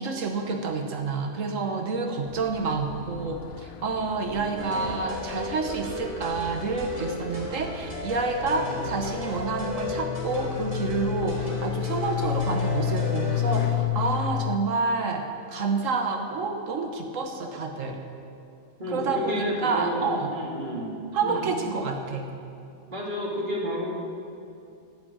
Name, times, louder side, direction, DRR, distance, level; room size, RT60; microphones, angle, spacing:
voice 1, 0.0-18.0 18.9-20.3 21.1-22.3, right 4 dB, 90° right, 3 dB, 1.5 m, -29 dB
sound 1, 2.3-14.6, left 10 dB, 65° left, 0.8 m, -32 dB
voice 2, 4.3-4.8 8.5-8.7 18.8-21.5 22.9-23.9, equal, 40° right, -1 dB, 2.4 m, -31 dB
sound 2, 4.6-13.7, equal, 30° left, 3.2 m, -35 dB
sound 3, 4.8-5.0 5.3-5.5 5.8-6.0 6.3-8.0 8.3-8.4 8.8-9.0 9.3-9.5 9.8-10.0 10.3-11.8 12.3-12.7, equal, 90° left, 3.8 m, -45 dB
12.0 x 10.5 x 8.7 m, 2.7 s
omnidirectional pair, 1.3 m